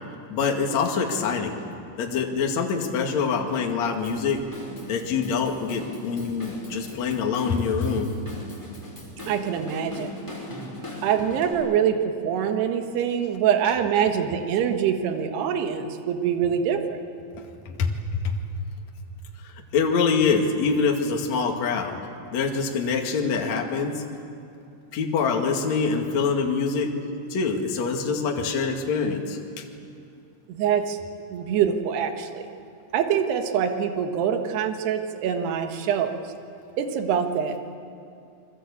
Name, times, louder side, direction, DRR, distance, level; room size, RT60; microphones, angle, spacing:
voice 1, 0.3-1.6 2.0-4.4 4.9-8.1 17.4-17.9 18.2-18.4 19.4-22.0 22.3-24.0 24.9-26.9 27.3-29.6, left 5 dB, 45° left, 2 dB, 2.7 m, -25 dB
Drum kit / Drum, 4.0-11.5, left 1 dB, 5° left, 4.8 m, -40 dB
voice 2, 9.3-10.1 11.0-17.0 30.5-31.0 31.3-32.4 32.9-36.1 36.8-37.6, right 8 dB, 70° right, 6 dB, 3.4 m, -24 dB
29.0 x 22.5 x 8.5 m, 2.6 s
omnidirectional pair, 5.2 m